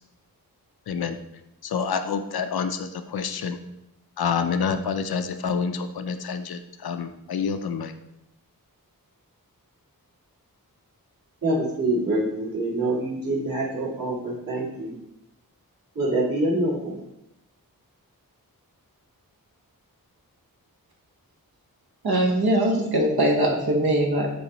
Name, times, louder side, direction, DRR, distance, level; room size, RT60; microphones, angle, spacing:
voice 1, 0.9-1.2 1.6-3.6 4.2-7.9, left 6 dB, 90° left, 9 dB, 0.5 m, -28 dB
voice 2, 11.4-14.9 16.0-17.0, right 1 dB, 65° right, -5 dB, 2.1 m, -25 dB
voice 3, 22.0-24.3, right 1 dB, 90° right, 0 dB, 1.2 m, -21 dB
8.3 x 4.0 x 2.9 m, 0.85 s
wide cardioid pair, 110°, 36 cm